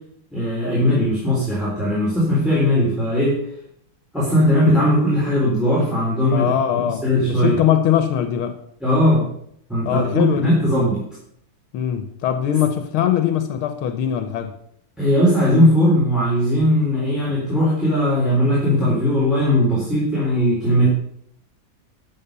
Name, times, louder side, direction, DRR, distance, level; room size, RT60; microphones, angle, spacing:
voice 1, 0.3-3.4 4.1-6.5 7.0-7.6 8.8-9.3 9.7-11.0 15.0-20.9, equal, ahead, -7 dB, 3.8 m, -18 dB
voice 2, 6.3-8.6 9.8-10.6 11.7-14.5, left 10 dB, 90° left, 8 dB, 1.8 m, -21 dB
12.5 x 6.4 x 6.8 m, 0.69 s
omnidirectional pair, 2.2 m